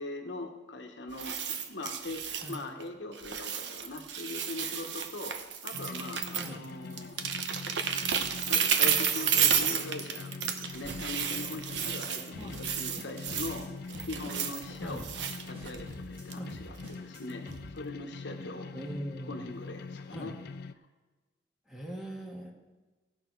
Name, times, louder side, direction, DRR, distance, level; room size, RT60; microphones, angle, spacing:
voice 1, 0.0-5.4 5.6-7.2 8.5-10.4 10.6-13.7 14.0-15.0 15.4-18.8 19.3-20.3, left 2 dB, 80° left, 4 dB, 1.2 m, -41 dB
sound 1, 1.1-2.8 3.1-6.7 6.9-13.6 13.9-15.9 16.3-16.5 16.9-17.0, right 8 dB, 80° right, 0.9 m, -32 dB
sound 2, 5.7-20.7, left 4 dB, 60° left, 0.4 m, -44 dB
sound 3, 11.7-12.1 12.3-12.7 13.0-13.7 13.9-14.6 14.9-15.3 15.5-16.2 16.5-17.2 17.5-17.6, equal, 35° right, 4.3 m, -47 dB
voice 2, 12.4-12.8 14.8-15.0 16.4-16.5 18.7-19.4 20.1-20.3 21.7-22.5, equal, 5° right, -2 dB, 1.8 m, -40 dB
17.0 x 6.2 x 4.6 m, 1.2 s
head